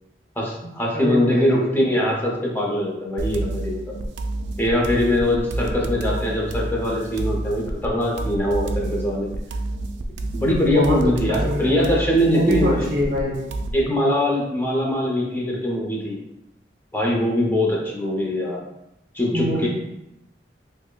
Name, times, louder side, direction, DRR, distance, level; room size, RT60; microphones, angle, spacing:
voice 1, 0.4-3.8 4.6-9.3 10.3-12.9 13.7-16.2 16.9-18.6 19.1-19.7, left 1 dB, 10° left, -3 dB, 0.6 m, -22 dB
voice 2, 0.9-1.8 10.7-11.0 11.3-13.5 19.3-19.7, equal, 55° right, -3 dB, 0.9 m, -25 dB
sound 1, 3.2-13.8, right 2 dB, 85° right, 0.3 m, -29 dB
5.1 x 2.1 x 2.3 m, 0.87 s
head